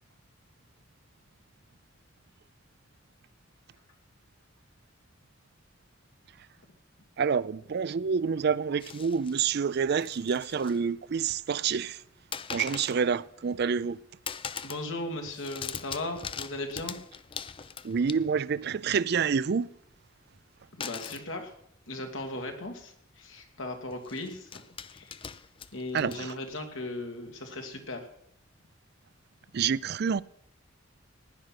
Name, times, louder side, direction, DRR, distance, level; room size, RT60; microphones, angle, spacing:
voice 1, 7.2-12.0 12.5-14.0 17.8-19.7 25.9-26.3 29.5-30.2, right 6 dB, 55° right, 0.4 m, -28 dB
sound 1, 8.8-9.4 9.9-10.8 11.1-11.6 12.3-13.0 13.5-13.9 14.3-14.9 15.2-18.6 20.8-21.3 22.2-22.3 22.7-22.8 23.9-26.6, left 7 dB, 25° left, 0.4 m, -41 dB
voice 2, 14.6-17.0 20.7-21.5 21.9-24.6 24.9-25.1 25.7-28.1, left 2 dB, 75° left, 2.3 m, -37 dB
16.0 x 10.5 x 5.9 m
head